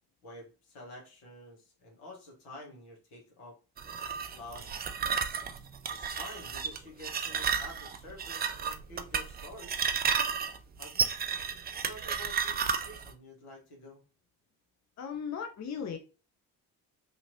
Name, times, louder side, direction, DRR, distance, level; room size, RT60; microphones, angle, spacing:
voice 1, 0.2-3.6 4.3-4.8 5.9-9.9 10.8-11.1 11.8-14.0, left 1 dB, 75° left, 1.3 m, -49 dB
sound 1, 3.8-13.1, right 6 dB, 25° right, 0.3 m, -32 dB
voice 2, 15.0-16.0, left 7 dB, 35° left, 0.7 m, -36 dB
3.0 x 2.8 x 2.6 m
hypercardioid pair, 40°, 49 cm